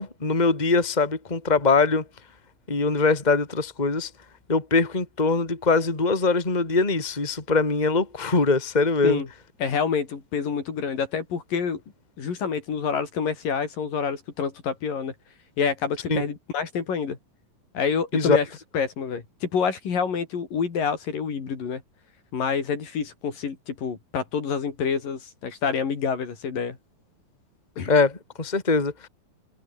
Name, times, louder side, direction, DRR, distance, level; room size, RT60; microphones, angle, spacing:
voice 1, 0.0-2.0 2.7-4.1 4.5-9.2 16.1-16.2 18.1-18.4 27.9-29.1, left 4 dB, 10° left, 2.9 m, -22 dB
voice 2, 9.6-11.8 12.2-15.1 15.6-17.2 17.8-18.5 18.7-21.8 22.3-26.8 27.8-27.9, left 6 dB, 70° left, 5.3 m, -27 dB
omnidirectional pair, 4.1 m